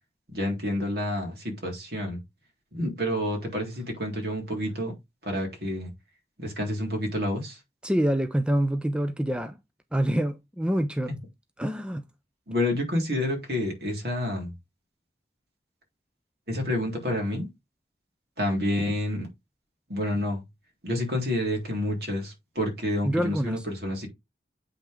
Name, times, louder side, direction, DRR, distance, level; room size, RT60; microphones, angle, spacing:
voice 1, 0.3-2.2 2.7-4.9 5.2-5.9 6.4-7.6 12.5-14.5 16.5-17.5 18.4-19.3 19.9-20.4 20.8-24.1, left 1 dB, 60° right, 3.6 m, -29 dB
voice 2, 7.8-9.6 9.9-11.1 11.6-12.0 23.0-23.6, right 1 dB, 5° right, 0.5 m, -26 dB
8.5 x 5.8 x 3.6 m
head